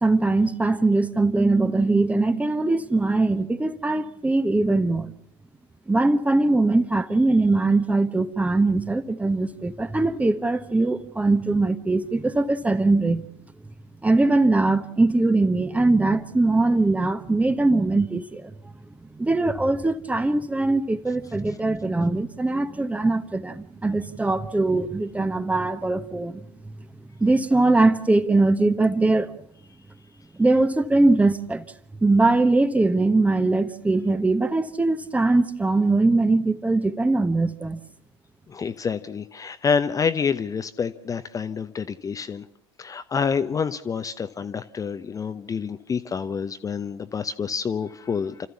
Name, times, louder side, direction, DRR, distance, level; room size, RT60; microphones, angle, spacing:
voice 1, 0.0-5.1 5.9-13.3 14.0-18.5 19.0-26.4 27.2-29.3 30.3-31.7 32.0-37.8, right 2 dB, 10° right, 1.1 m, -21 dB
voice 2, 38.5-42.5 42.8-48.5, left 6 dB, 25° left, 0.9 m, -27 dB
29.5 x 14.0 x 7.0 m
figure-of-eight pair, 70°, 14 cm